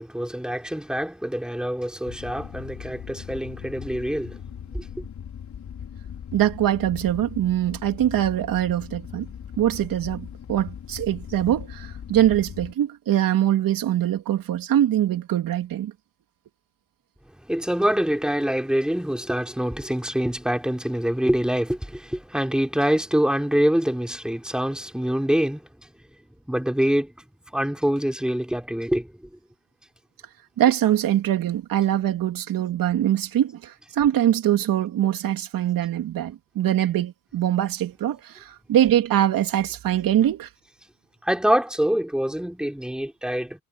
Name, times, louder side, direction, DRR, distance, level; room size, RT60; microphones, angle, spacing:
voice 1, 0.0-4.4 4.7-5.1 17.5-25.7 26.5-27.1 27.5-29.1 41.2-43.6, equal, ahead, 4.3 m, -25 dB
sound 1, 2.1-12.7, left 8 dB, 50° left, 4.9 m, -39 dB
voice 2, 6.3-9.3 9.6-15.9 30.6-40.5, right 11 dB, 65° right, 3.1 m, -23 dB
cardioid pair, 105°, 36 cm